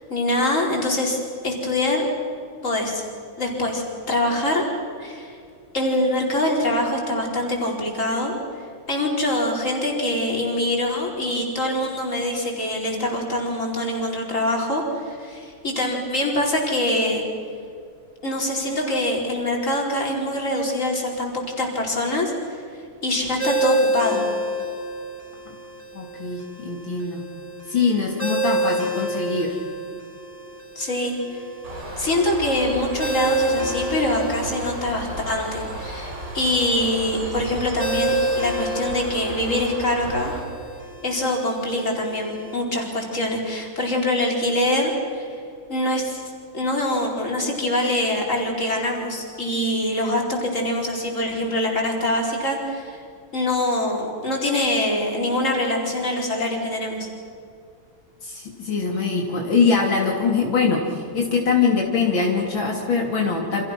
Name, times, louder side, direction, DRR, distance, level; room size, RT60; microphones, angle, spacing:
voice 1, 0.1-1.2 1.4-2.1 2.6-3.0 3.4-4.6 5.0-5.4 5.7-8.4 8.9-17.2 18.2-22.6 23.0-24.2 30.8-31.1 32.0-40.3 41.0-45.3 45.7-46.2 46.5-53.0 53.3-57.1, left 1 dB, 35° left, -1 dB, 5.1 m, -24 dB
Ringtone, 23.4-42.5, right 1 dB, 10° right, 5.9 m, -29 dB
voice 2, 25.9-27.2 27.7-29.6 58.2-63.6, left 5 dB, 70° left, -1 dB, 3.6 m, -23 dB
Bird, 31.6-40.4, right 1 dB, 60° right, 5.1 m, -35 dB
29.5 x 27.5 x 6.1 m, 2.3 s
omnidirectional pair, 2.2 m